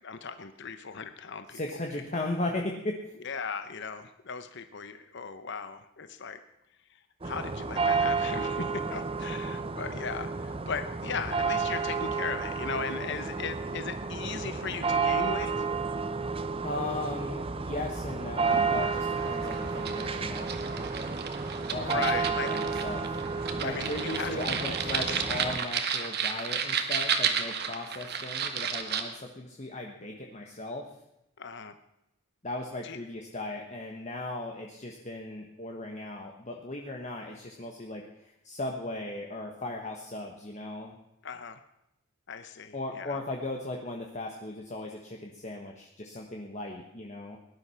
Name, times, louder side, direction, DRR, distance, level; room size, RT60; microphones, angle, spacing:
voice 1, 0.0-1.8 3.2-6.4 6.9-15.6 21.7-22.6 23.6-24.4 24.6-25.2 31.4-31.7 32.8-33.0 41.2-41.6 42.3-43.2, left 5 dB, 55° left, 10 dB, 0.9 m, -37 dB
voice 2, 1.5-3.0 16.6-20.9 21.7-23.0 23.3-30.9 32.4-40.9 42.7-47.4, left 2 dB, 35° left, 1 dB, 1.4 m, -37 dB
sound 1, 7.2-25.6, right 4 dB, 25° right, 0.7 m, -31 dB
sound 2, 18.4-29.0, right 6 dB, 50° right, 1.4 m, -33 dB
18.5 x 11.5 x 5.8 m, 0.86 s
head